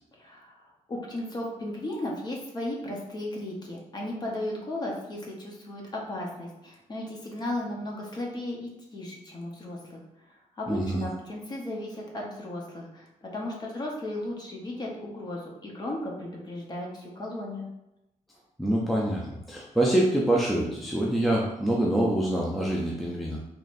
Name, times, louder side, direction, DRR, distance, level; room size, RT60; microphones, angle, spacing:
voice 1, 0.2-10.0 10.3-17.7, left 1 dB, 30° left, -1 dB, 0.8 m, -35 dB
voice 2, 10.7-11.0 18.6-23.4, right 1 dB, ahead, -4 dB, 0.4 m, -25 dB
3.9 x 3.0 x 2.5 m, 0.89 s
wide cardioid pair, 165°, 14 cm